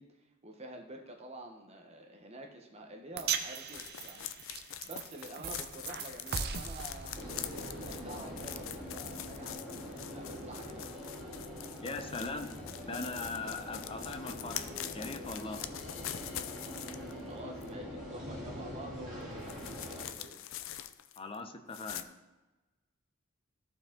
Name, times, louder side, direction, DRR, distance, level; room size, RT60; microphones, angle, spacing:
voice 1, 0.0-4.3 4.8-11.3 17.3-20.4, right 1 dB, 30° right, 2 dB, 1.0 m, -48 dB
sound 1, 3.2-9.5, right 7 dB, 50° right, 0.6 m, -40 dB
sound 2, 3.7-17.2 17.6-17.7 19.4-21.4 21.7-22.0, left 11 dB, 65° left, 0.4 m, -44 dB
sound 3, 7.1-20.1, equal, 5° right, 2.9 m, -44 dB
voice 2, 11.8-12.5 12.8-15.6 21.2-22.0, left 3 dB, 25° left, 6 dB, 0.7 m, -40 dB
14.0 x 4.7 x 3.8 m, 1.1 s
head